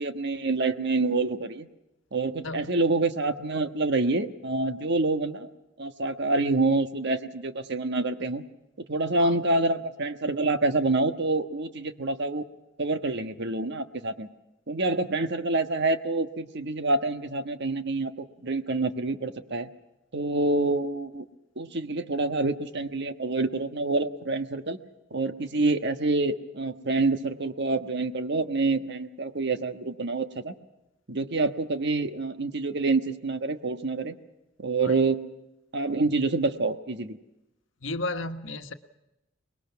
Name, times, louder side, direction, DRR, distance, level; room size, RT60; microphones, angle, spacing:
voice 1, 0.0-1.7 2.1-5.5 5.8-8.4 8.8-12.4 12.8-14.3 14.7-19.7 20.1-21.3 21.6-24.8 25.1-30.5 31.1-34.1 34.6-35.2 35.7-37.2, right 3 dB, 60° right, 9 dB, 1.3 m, -27 dB
voice 2, 2.4-2.8 9.2-9.4 34.8-35.0 37.8-38.7, left 2 dB, 70° left, 8 dB, 1.3 m, -33 dB
24.5 x 21.0 x 6.0 m, 0.93 s
head